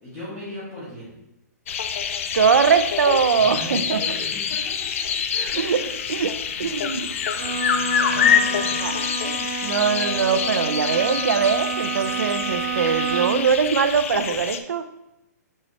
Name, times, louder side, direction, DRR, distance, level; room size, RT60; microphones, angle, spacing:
voice 1, 0.0-1.1 3.3-4.9 5.3-9.2, equal, 15° left, -11 dB, 1.8 m, -39 dB
sound 1, 1.7-14.6, left 7 dB, 50° left, 0.5 m, -26 dB
voice 2, 2.3-4.0 5.6-5.8 6.1-6.3 6.6-7.1 8.8-8.9 9.2-14.9, right 6 dB, 80° right, 10 dB, 0.6 m, -22 dB
Bowed string instrument, 7.3-13.5, right 5 dB, 40° right, 1.1 m, -29 dB
5.7 x 5.4 x 3.2 m, 0.91 s
hypercardioid pair, 160°, 9 cm